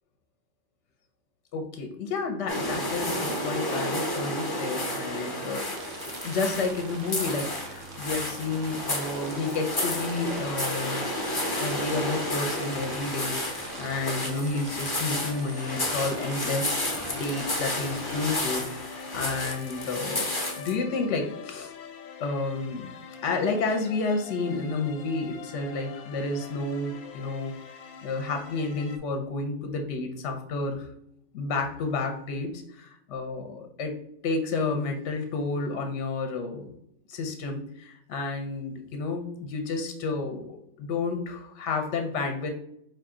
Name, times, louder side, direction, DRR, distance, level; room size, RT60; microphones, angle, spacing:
voice 1, 1.5-5.7 6.2-11.1 11.6-20.3 20.6-21.7 22.2-27.5 28.0-30.9 31.3-34.0 34.2-36.7 37.1-42.5, left 3 dB, 65° left, 4 dB, 0.9 m, -31 dB
sound 1, 2.5-20.8, left 1 dB, 25° left, 0.5 m, -31 dB
sound 2, 5.7-18.4, right 4 dB, 65° right, 0.4 m, -44 dB
sound 3, 9.8-29.0, left 6 dB, 90° left, 1.0 m, -44 dB
4.9 x 2.7 x 3.6 m, 0.72 s
omnidirectional pair, 1.4 m